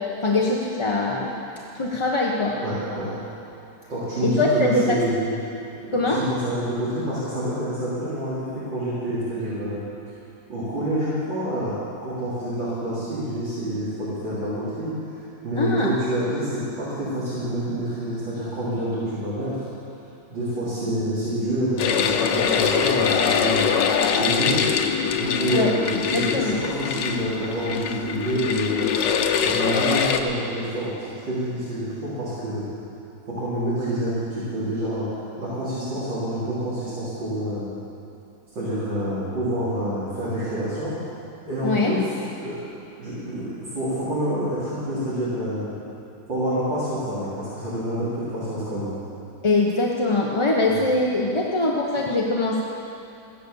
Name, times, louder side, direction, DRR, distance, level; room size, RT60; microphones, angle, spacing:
voice 1, 0.0-1.4 1.7-2.6 4.2-5.0 5.9-6.2 15.6-15.9 25.5-25.7 26.1-26.6 41.6-42.0 49.4-52.6, left 2 dB, 25° left, -2 dB, 0.7 m, -22 dB
voice 2, 2.6-3.1 3.9-5.3 5.8-10.1 10.5-11.7 12.0-15.2 15.4-19.7 20.3-23.6 24.1-24.6 25.1-28.9 29.4-32.7 33.3-35.1 35.4-37.7 38.5-40.9 41.5-42.0 42.4-42.6 43.0-45.7 46.3-49.0, right 1 dB, 85° right, -11 dB, 4.2 m, -27 dB
sound 1, 21.8-30.2, left 7 dB, 80° left, 1.5 m, -23 dB
15.5 x 11.0 x 7.0 m, 2.8 s
omnidirectional pair, 2.0 m